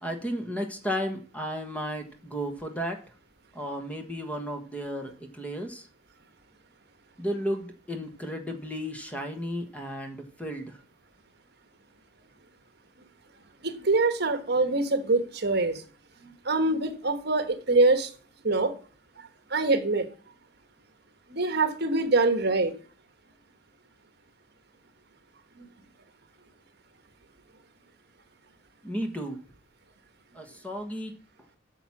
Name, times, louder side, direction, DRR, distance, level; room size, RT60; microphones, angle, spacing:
voice 1, 0.0-3.0 3.5-5.9 7.2-10.8 28.8-29.4 30.3-31.1, equal, 5° left, 4 dB, 1.4 m, -34 dB
voice 2, 13.6-15.8 16.4-18.1 18.4-18.7 19.5-20.1 21.3-22.7 25.6-25.7, right 3 dB, 55° right, 8 dB, 1.3 m, -24 dB
9.0 x 7.1 x 6.0 m, 0.41 s
head